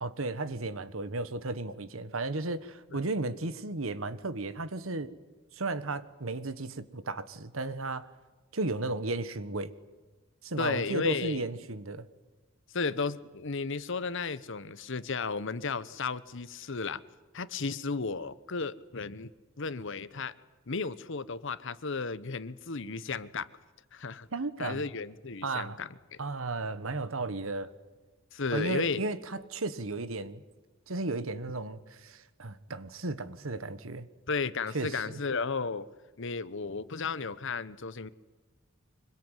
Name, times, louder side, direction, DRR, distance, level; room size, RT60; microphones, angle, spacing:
voice 1, 0.0-5.1 5.5-8.1 8.5-9.7 10.4-12.1 24.3-24.8 25.4-25.8 26.2-27.7 28.5-30.4 30.9-34.1 34.7-35.2, right 2 dB, 75° right, 13 dB, 1.4 m, -34 dB
voice 2, 10.6-11.4 12.7-17.0 17.3-19.3 19.6-20.3 20.7-23.5 23.9-24.3 24.6-26.2 28.3-29.0 34.3-35.9 36.2-38.1, left 4 dB, 65° left, 16 dB, 1.0 m, -34 dB
25.0 x 22.5 x 9.2 m, 1.2 s
head